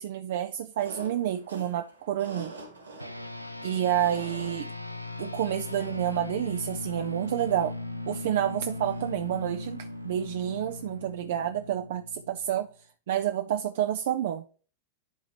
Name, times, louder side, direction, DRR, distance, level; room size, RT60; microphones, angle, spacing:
voice 1, 0.0-2.5 3.6-4.7 5.2-7.8 8.1-12.7 13.1-14.4, right 11 dB, 55° right, 0.4 m, -29 dB
sound 1, 0.8-11.1, right 2 dB, 80° right, 2.5 m, -49 dB
sound 2, 3.0-12.7, left 2 dB, 90° left, 0.5 m, -38 dB
11.0 x 3.6 x 3.3 m
figure-of-eight pair, 90°, 0 cm